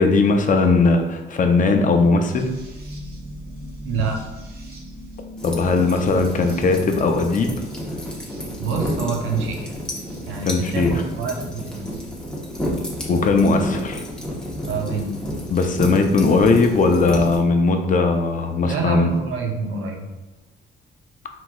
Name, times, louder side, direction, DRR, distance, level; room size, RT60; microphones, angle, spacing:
voice 1, 0.0-2.5 5.4-7.5 10.4-10.9 13.1-14.0 15.5-19.1, left 3 dB, 40° left, 5 dB, 0.6 m, -18 dB
sound 1, 2.3-10.5 11.2-12.0 13.1-13.8 15.5-15.6 17.3-17.4, equal, 50° right, 1.2 m, -40 dB
voice 2, 3.8-4.2 8.6-9.7 10.3-11.9 14.6-15.1 18.6-20.1, right 5 dB, 80° right, 2 dB, 0.8 m, -26 dB
sound 2, 5.4-17.4, equal, 5° left, 1.1 m, -31 dB
4.4 x 3.9 x 2.4 m, 1.1 s
cardioid pair, 90°, 20 cm